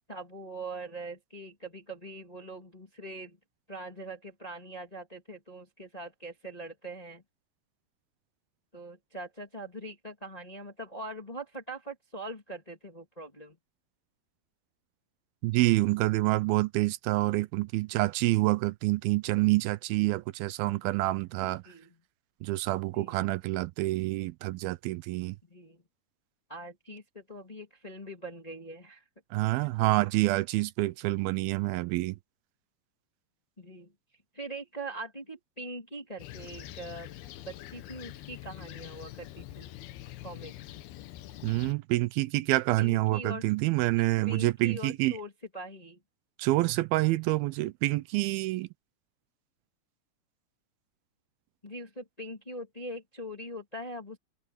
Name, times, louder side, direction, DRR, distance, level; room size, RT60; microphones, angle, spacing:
voice 1, 0.1-3.4 3.7-7.2 8.7-13.6 21.4-22.0 22.9-23.3 25.4-25.8 26.5-29.0 29.5-29.7 33.6-33.9 34.3-37.1 37.4-39.7 40.2-40.6 42.8-43.4 43.9-46.0 51.6-54.2, right 1 dB, 15° left, 1.4 m, -42 dB
voice 2, 15.4-21.6 22.4-25.4 29.3-32.2 41.4-45.1 46.4-48.7, right 19 dB, 80° right, 2.5 m, -27 dB
Fixed-wing aircraft airplane, 36.2-41.7, left 13 dB, 90° left, 3.0 m, -45 dB
omnidirectional pair, 4.3 m